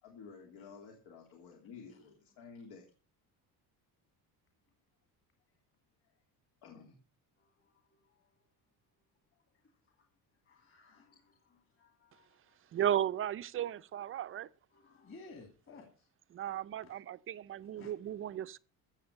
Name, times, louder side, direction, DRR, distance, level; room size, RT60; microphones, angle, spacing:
voice 1, 0.0-2.9 6.6-6.9, left 5 dB, 75° left, 2.9 m, -52 dB
voice 2, 7.4-8.6 9.3-12.8 14.7-16.1 16.5-17.0 17.6-18.3, left 3 dB, 35° left, 2.7 m, -59 dB
voice 3, 12.7-14.5 16.3-18.6, right 11 dB, 35° right, 0.5 m, -35 dB
15.0 x 7.8 x 6.4 m
cardioid pair, 160°, 40 cm